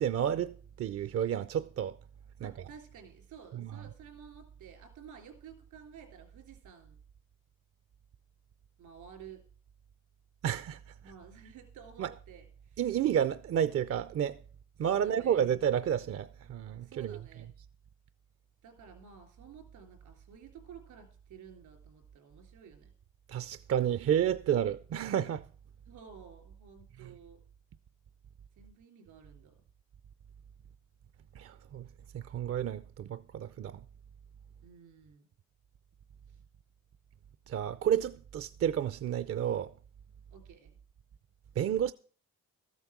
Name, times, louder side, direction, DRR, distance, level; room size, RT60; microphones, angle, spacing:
voice 1, 0.0-2.0 2.4-2.5 3.5-3.7 10.4-10.8 12.0-12.1 12.8-14.4 14.8-17.2 23.3-25.5 27.0-27.1 31.4-31.8 32.1-33.8 37.5-39.7 41.6-41.9, right 9 dB, 50° right, 0.5 m, -31 dB
voice 2, 2.4-7.0 8.8-9.4 11.0-12.8 14.8-15.4 16.8-17.5 18.6-22.9 25.9-27.4 28.6-29.5 34.6-35.3 36.3-36.4 40.3-40.8, right 7 dB, 85° right, 3.6 m, -53 dB
13.5 x 8.1 x 6.0 m
cardioid pair, 90°, 30 cm